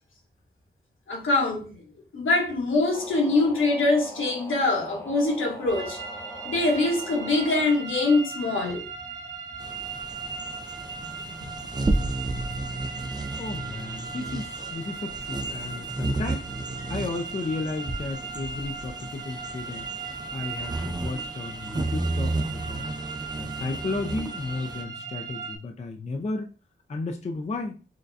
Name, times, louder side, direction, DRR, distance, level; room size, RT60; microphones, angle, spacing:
voice 1, 1.1-1.7 2.1-6.0 6.4-8.8 11.3-11.6, left 2 dB, 75° left, 1.4 m, -24 dB
sound 1, 2.9-7.7, equal, 10° left, 0.9 m, -42 dB
sound 2, 5.7-25.6, right 5 dB, 65° right, 1.1 m, -38 dB
sound 3, 9.6-24.8, right 2 dB, 20° right, 0.5 m, -33 dB
voice 2, 13.4-16.5 16.9-19.9 20.3-22.9 23.4-26.5 26.9-27.8, left 3 dB, 35° left, 0.5 m, -33 dB
6.3 x 2.2 x 2.6 m
wide cardioid pair, 75°, 20 cm